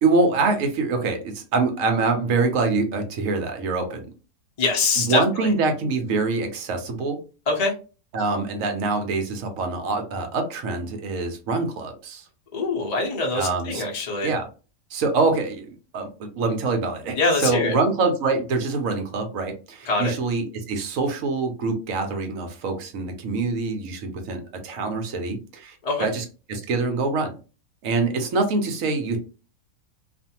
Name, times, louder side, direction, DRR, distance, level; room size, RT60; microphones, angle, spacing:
voice 1, 0.0-4.1 5.0-7.2 8.1-12.2 13.3-13.8 14.2-14.5 14.9-27.3 27.8-29.2, right 3 dB, 65° right, 5 dB, 0.9 m, -25 dB
voice 2, 4.6-5.5 7.5-7.7 12.5-14.3 17.1-17.7 19.8-20.1 25.8-26.1, left 3 dB, 50° left, 0 dB, 0.4 m, -24 dB
2.5 x 2.5 x 2.7 m, 0.33 s
omnidirectional pair, 1.7 m